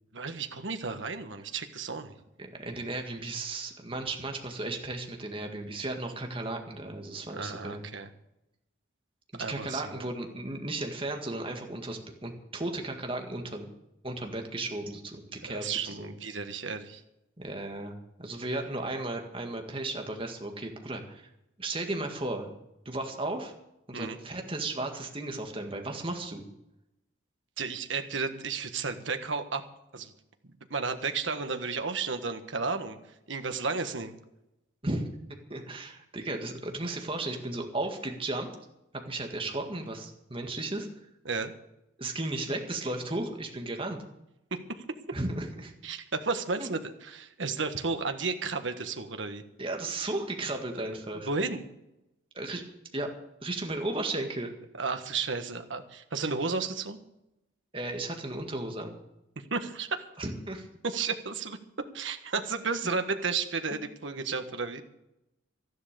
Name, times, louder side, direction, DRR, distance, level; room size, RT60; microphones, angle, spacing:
voice 1, 0.1-2.1 7.3-8.1 9.4-10.1 15.5-17.0 23.9-24.2 27.6-29.6 29.9-30.1 30.7-33.0 33.3-34.1 41.2-41.5 44.5-44.8 45.8-49.4 50.7-50.9 51.2-51.6 54.7-57.0 59.4-59.9 60.8-61.6 61.9-64.8, right 4 dB, 75° right, 7 dB, 1.4 m, -33 dB
voice 2, 2.4-7.8 9.3-13.7 14.0-16.1 17.4-17.9 18.2-21.3 21.6-22.5 22.9-23.5 23.9-26.4 34.8-35.1 35.5-38.5 39.1-40.9 42.0-44.0 45.1-45.7 46.6-46.7 49.6-51.3 52.3-52.6 52.9-53.1 53.4-54.5 57.7-59.0 60.2-60.7, right 2 dB, 25° right, 3 dB, 1.9 m, -35 dB
13.5 x 11.0 x 6.8 m, 0.88 s
head